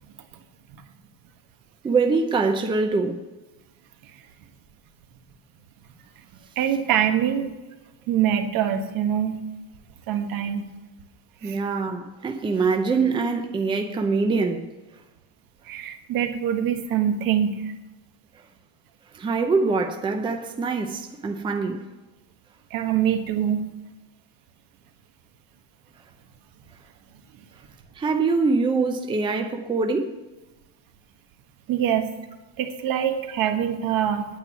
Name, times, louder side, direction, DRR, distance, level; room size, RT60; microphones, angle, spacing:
voice 1, 1.8-3.2 11.4-14.7 19.1-21.9 28.0-30.2, right 4 dB, 15° right, 0.6 m, -24 dB
voice 2, 6.6-7.5 8.1-9.4 10.1-10.6 11.4-11.6 15.6-17.7 22.7-23.6 31.7-32.1 32.6-34.2, right 9 dB, 65° right, 1.4 m, -24 dB
9.4 x 9.1 x 7.1 m
cardioid pair, 180°, 37 cm